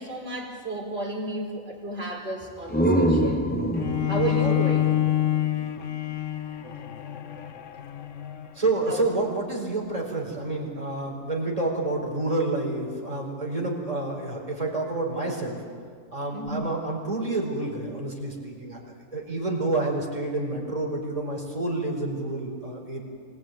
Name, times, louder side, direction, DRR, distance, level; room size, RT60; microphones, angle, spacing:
voice 1, 0.0-3.5 4.1-4.9 8.9-9.0 16.3-16.6, right 2 dB, 50° right, -2 dB, 4.5 m, -32 dB
sound 1, 2.4-6.1, right 1 dB, 10° left, 1.0 m, -26 dB
Bowed string instrument, 3.7-9.0, left 12 dB, 65° left, 1.3 m, -27 dB
voice 2, 4.2-5.0 8.5-15.6 16.1-18.8 19.1-23.0, right 2 dB, 25° right, -1 dB, 4.5 m, -29 dB
25.5 x 17.5 x 9.2 m, 2.1 s
omnidirectional pair, 1.4 m